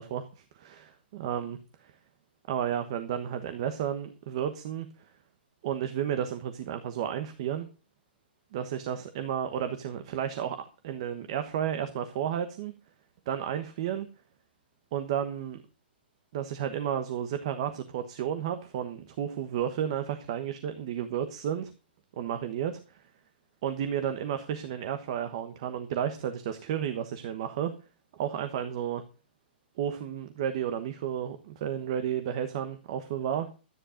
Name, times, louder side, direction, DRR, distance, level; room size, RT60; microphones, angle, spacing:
voice 1, 0.0-1.9 2.5-4.9 5.6-7.7 8.5-12.7 13.3-14.1 14.9-15.6 16.3-21.7 22.2-22.8 23.6-27.7 28.1-29.0 29.8-33.5, right 9 dB, 30° right, 10 dB, 1.1 m, -32 dB
13.0 x 9.9 x 5.0 m, 0.34 s
hypercardioid pair, 180°, 6 cm